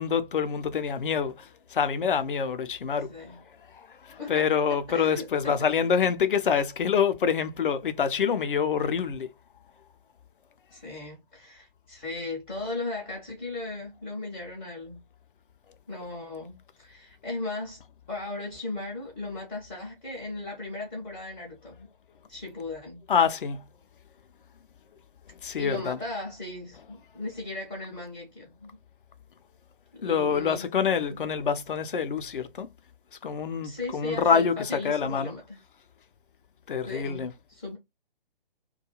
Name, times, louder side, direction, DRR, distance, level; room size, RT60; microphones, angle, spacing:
voice 1, 0.0-3.1 3.7-9.3 23.1-23.6 25.4-26.0 30.0-32.7 33.2-35.3 36.7-37.3, left 7 dB, 60° left, 0.5 m, -26 dB
voice 2, 3.1-3.4 4.2-4.5 4.9-5.7 10.7-15.0 15.9-17.8 18.1-21.9 22.3-23.0 25.6-28.8 29.9-30.7 33.6-35.6 36.8-37.8, left 2 dB, 15° left, 0.5 m, -37 dB
2.4 x 2.2 x 2.9 m
figure-of-eight pair, 135°, 29 cm